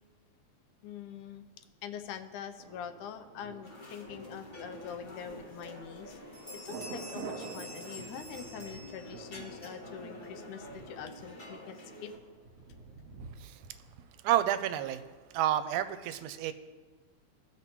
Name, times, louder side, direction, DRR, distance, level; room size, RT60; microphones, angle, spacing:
voice 1, 0.8-1.4 1.8-12.1, left 8 dB, 85° left, 8 dB, 2.1 m, -44 dB
Thunder, 2.6-14.4 14.7-14.8, right 4 dB, 65° right, 2.1 m, -49 dB
sound 1, 3.6-12.2, left 1 dB, 55° left, 0.6 m, -48 dB
sound 2, 5.3-5.4 5.8-6.1 6.3-9.5, left 1 dB, 15° left, 1.1 m, -48 dB
voice 2, 14.2-15.0 15.3-16.5, right 12 dB, 85° right, 12 dB, 2.0 m, -29 dB
16.5 x 6.0 x 3.0 m, 1.3 s
omnidirectional pair, 3.4 m